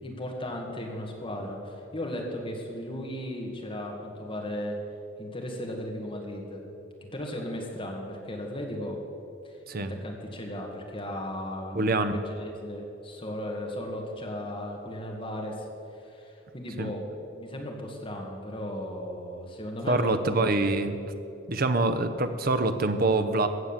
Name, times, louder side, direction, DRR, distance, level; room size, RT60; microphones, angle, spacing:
voice 1, 0.0-4.8 5.2-6.6 7.1-9.0 9.4-15.7 16.0-21.1, left 1 dB, 25° left, 0 dB, 1.9 m, -36 dB
voice 2, 11.7-12.2 16.8-16.9 19.9-21.0 21.5-23.5, right 2 dB, 50° right, 8 dB, 0.8 m, -25 dB
14.5 x 8.1 x 7.4 m, 2.6 s
head